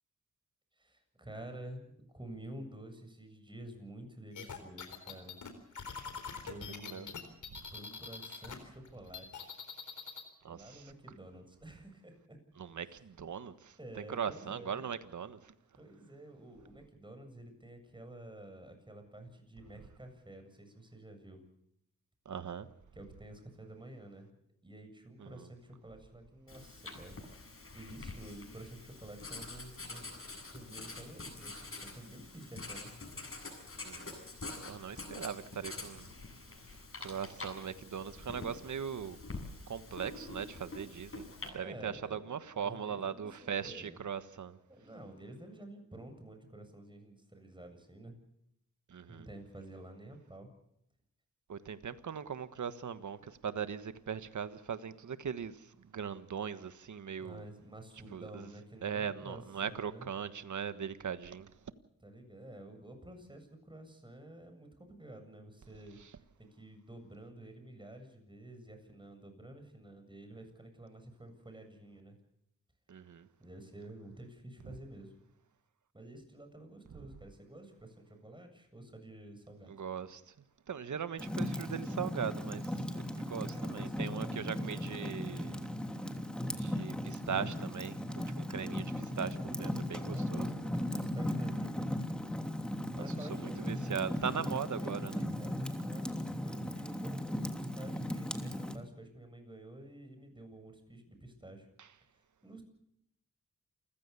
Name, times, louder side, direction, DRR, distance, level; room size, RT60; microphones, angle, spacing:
voice 1, 0.7-5.4 6.4-7.3 7.7-9.5 10.5-12.4 13.8-14.9 15.7-21.4 22.9-24.3 24.6-27.2 27.7-30.1 30.5-32.9 41.6-42.2 42.6-44.0 44.7-48.2 49.1-50.5 57.2-60.1 62.0-72.2 73.4-75.1 75.9-79.7 83.5-85.1 90.1-91.9 93.0-101.7 102.4-102.6, right 1 dB, 15° right, 7.6 m, -50 dB
sound 1, 4.3-8.6 8.8-10.3, left 6 dB, 70° left, 4.1 m, -44 dB
voice 2, 10.4-10.9 12.6-15.5 22.2-22.7 25.2-25.5 33.8-34.2 34.6-36.1 36.7-39.2 39.7-44.6 48.9-49.3 51.5-57.4 58.1-58.5 58.8-61.5 72.9-73.3 74.6-74.8 79.7-80.3 80.7-85.7 86.5-90.5 93.3-95.2 101.8-101.9, right 7 dB, 70° right, 1.5 m, -40 dB
Writing, 26.5-41.5, left 3 dB, 45° left, 7.9 m, -46 dB
Fire, 81.2-98.8, left 1 dB, 5° left, 3.0 m, -37 dB
28.5 x 16.0 x 7.0 m
cardioid pair, 55°, 31 cm